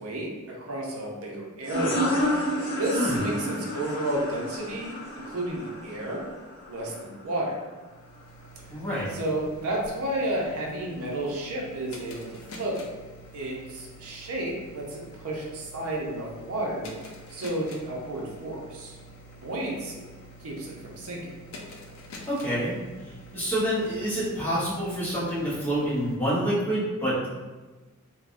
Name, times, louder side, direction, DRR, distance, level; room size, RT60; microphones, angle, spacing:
voice 1, 0.0-2.1 2.8-6.3 6.7-7.7 9.1-12.8 13.3-16.9 17.3-19.0 19.4-20.1 20.4-21.3, right 1 dB, 80° right, -2 dB, 0.6 m, -32 dB
sound 1, 1.6-7.0, equal, 40° left, 0.7 m, -30 dB
sound 2, 7.7-26.2, equal, 70° left, 0.4 m, -47 dB
voice 2, 8.7-9.1 22.3-22.8 23.3-27.3, equal, 10° left, -10 dB, 0.8 m, -27 dB
3.3 x 2.2 x 2.5 m, 1.2 s
head